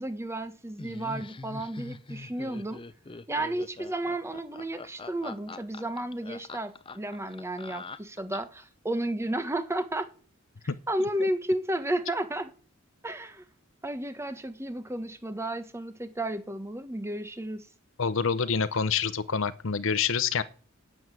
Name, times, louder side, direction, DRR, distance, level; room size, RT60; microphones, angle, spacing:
voice 1, 0.0-2.8 3.3-10.1 10.9-12.5 13.0-13.4 13.8-17.7, right 1 dB, 15° right, 1.3 m, -32 dB
Laughter, 0.8-8.6, left 3 dB, 25° left, 0.6 m, -43 dB
voice 2, 18.0-20.4, left 6 dB, 65° left, 0.8 m, -27 dB
11.0 x 8.0 x 9.5 m
head